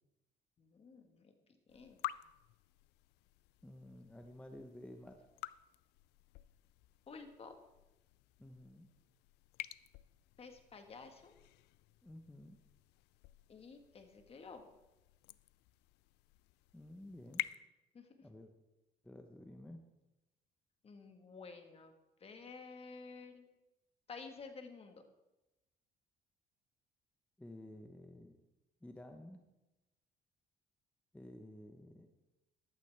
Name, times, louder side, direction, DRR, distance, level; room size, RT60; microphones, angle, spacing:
voice 1, 0.6-1.3 1.7-2.0 7.1-7.6 10.4-11.3 13.5-14.7 17.9-18.3 20.8-21.9 22.2-23.5 24.1-25.1, left 4 dB, 35° left, 6 dB, 1.6 m, -52 dB
sound 1, 1.7-17.5, left 17 dB, 85° left, 0.4 m, -50 dB
voice 2, 3.6-5.2 8.4-8.9 12.0-12.6 16.7-17.4 18.2-18.5 19.0-19.9 27.4-28.3 28.8-29.4 31.1-32.1, left 1 dB, 5° left, 4 dB, 1.0 m, -52 dB
14.5 x 12.0 x 3.5 m, 0.97 s
cardioid pair, 110°, 17 cm